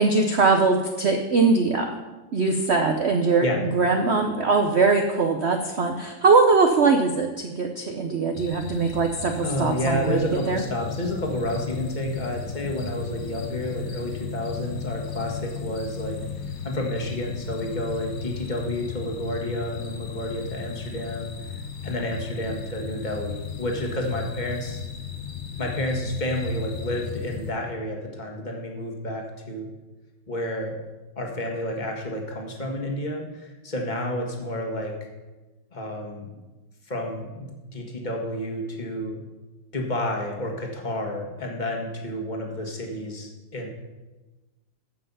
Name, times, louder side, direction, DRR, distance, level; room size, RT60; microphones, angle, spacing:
voice 1, 0.0-2.0 2.3-10.2 10.5-10.6, right 4 dB, 85° right, 4 dB, 0.5 m, -21 dB
sound 1, 8.3-27.5, left 6 dB, 80° left, 1.8 m, -36 dB
voice 2, 9.4-16.2 16.6-24.8 25.6-29.7 30.3-30.7 31.2-34.9 35.7-36.3 36.9-39.2 39.7-43.7, left 1 dB, 25° left, 1 dB, 1.5 m, -30 dB
15.0 x 5.6 x 5.5 m, 1.2 s
omnidirectional pair, 2.2 m